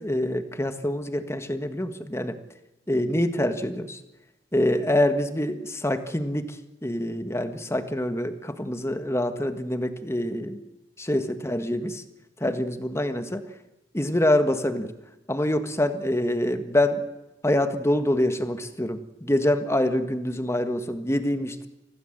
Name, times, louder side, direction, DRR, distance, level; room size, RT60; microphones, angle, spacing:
voice 1, 0.0-2.4 2.9-4.0 4.5-6.6 6.8-10.6 11.0-12.0 12.4-13.4 13.9-14.9 15.3-17.0 17.4-21.7, left 1 dB, 15° left, 9 dB, 1.5 m, -25 dB
25.0 x 17.0 x 7.8 m, 1.0 s
head